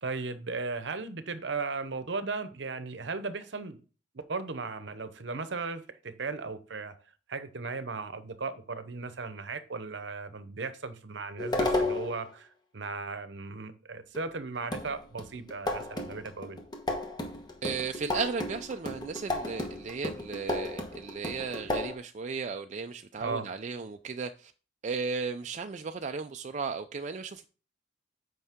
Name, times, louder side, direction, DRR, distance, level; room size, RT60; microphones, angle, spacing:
voice 1, 0.0-3.8 4.1-7.0 7.3-12.5 12.7-16.6 23.2-23.5, right 4 dB, 60° right, 0.8 m, -36 dB
sound 1, 11.4-12.2 14.1-14.2 14.7-21.9, left 2 dB, 20° left, 1.2 m, -33 dB
voice 2, 17.6-24.5 24.8-27.5, right 5 dB, 35° right, 0.4 m, -35 dB
8.2 x 5.5 x 3.6 m
head